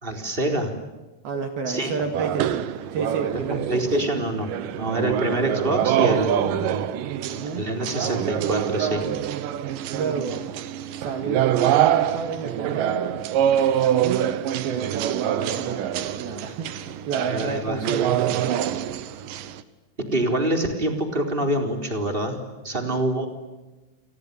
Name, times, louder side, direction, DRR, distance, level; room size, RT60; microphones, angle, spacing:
voice 1, 0.0-0.8 1.7-2.1 3.3-6.9 7.5-9.1 17.3-17.9 20.0-23.3, right 1 dB, 10° right, 4 dB, 3.6 m, -26 dB
voice 2, 1.2-2.7 2.9-3.9 7.2-7.7 9.9-10.5 10.9-13.2 13.7-14.3 14.6-18.8, right 5 dB, 60° right, 6 dB, 3.4 m, -31 dB
sound 1, 2.1-19.6, right 11 dB, 90° right, 1.9 m, -25 dB
29.0 x 28.0 x 7.1 m, 1.1 s
omnidirectional pair, 5.7 m